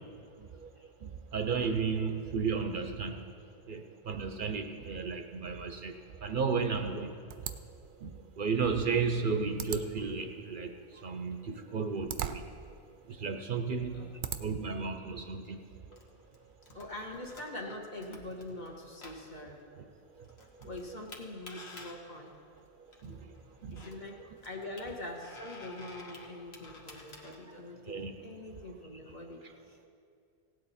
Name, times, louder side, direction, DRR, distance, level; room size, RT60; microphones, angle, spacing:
voice 1, 1.0-3.3 3.7-5.9 6.2-7.2 8.0-8.1 8.4-10.7 11.0-12.4 13.1-14.1 14.4-15.6 20.6-20.7 23.0-23.2 23.6-23.8 27.9-28.1, right 5 dB, 55° right, 6 dB, 0.7 m, -33 dB
sound 1, 7.3-14.7, right 9 dB, 90° right, 0.9 m, -43 dB
sound 2, 15.9-27.3, left 2 dB, 65° left, 1.6 m, -52 dB
voice 2, 16.7-19.6 20.6-22.3 23.7-28.0 28.2-29.9, left 1 dB, 40° left, 0 dB, 1.5 m, -44 dB
17.0 x 9.1 x 4.2 m, 2.4 s
omnidirectional pair, 1.2 m